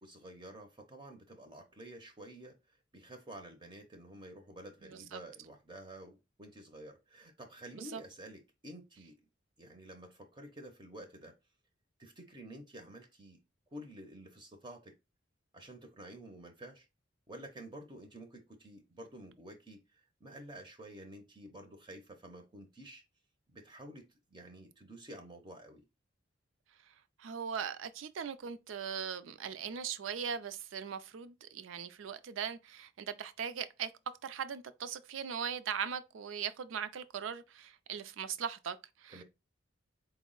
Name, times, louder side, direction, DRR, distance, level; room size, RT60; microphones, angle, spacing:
voice 1, 0.0-2.6 2.9-9.2 9.6-11.3 12.0-13.4 13.7-15.0 15.5-16.9 17.3-23.0 23.5-24.1 24.3-25.8 39.1-39.2, right 1 dB, 25° right, 0.5 m, -50 dB
voice 2, 4.8-5.2 7.7-8.0 27.2-33.9 34.2-39.2, right 7 dB, 85° right, 0.4 m, -39 dB
4.3 x 2.0 x 3.7 m
head